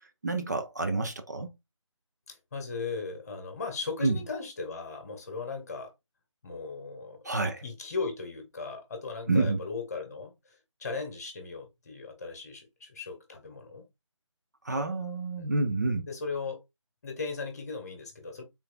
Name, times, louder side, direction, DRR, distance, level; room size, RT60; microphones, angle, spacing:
voice 1, 0.2-1.5 4.0-4.2 7.2-7.6 9.3-9.6 14.6-16.1, right 3 dB, 35° right, 0.5 m, -28 dB
voice 2, 2.3-5.9 6.4-13.9 15.4-15.6 16.1-16.6 17.0-18.4, left 4 dB, 30° left, 1.3 m, -37 dB
4.7 x 3.9 x 2.2 m
figure-of-eight pair, 155°, 17 cm